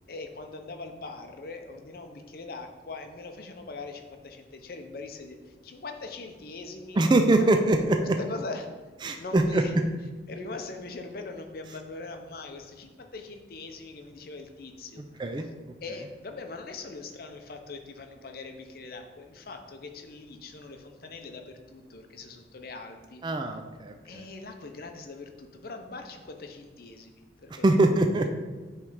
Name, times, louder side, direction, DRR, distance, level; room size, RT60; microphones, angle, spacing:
voice 1, 0.1-7.5 8.0-8.7 9.1-9.7 10.3-15.3 15.8-23.2 24.0-27.7, left 3 dB, 55° left, 5 dB, 0.6 m, -41 dB
voice 2, 7.0-8.0 9.0-9.6 15.2-15.4 23.2-24.2 27.5-28.3, right 2 dB, 25° right, 5 dB, 0.3 m, -23 dB
6.9 x 3.3 x 4.9 m, 1.3 s
head